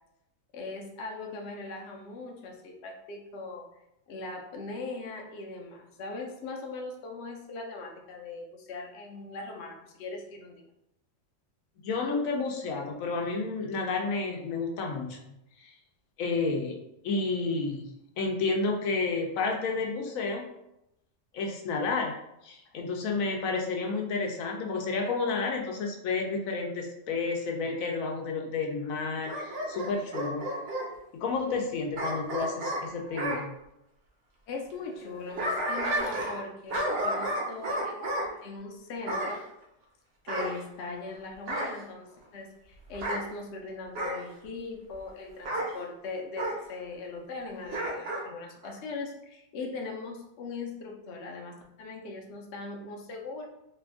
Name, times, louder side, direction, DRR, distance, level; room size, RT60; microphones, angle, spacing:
voice 1, 0.5-3.7 4.1-10.6 34.5-39.4 40.2-53.5, left 3 dB, 65° left, 1 dB, 0.8 m, -40 dB
voice 2, 11.8-15.2 15.6-15.7 16.2-17.9 18.2-20.5 21.3-22.1 22.4-30.4 31.1-33.5, left 4 dB, 85° left, 1 dB, 1.0 m, -31 dB
Bark / Growling, 29.3-30.9 32.0-33.4 35.0-36.4 36.7-38.3 39.1-39.4 40.3-41.1 41.5-41.8 42.9-43.2 44.0-44.2 45.5-45.7 46.4-46.6 47.7-48.3 48.6-48.7, right 1 dB, 55° right, 0.8 m, -32 dB
2.9 x 2.4 x 3.5 m, 0.85 s
omnidirectional pair, 1.4 m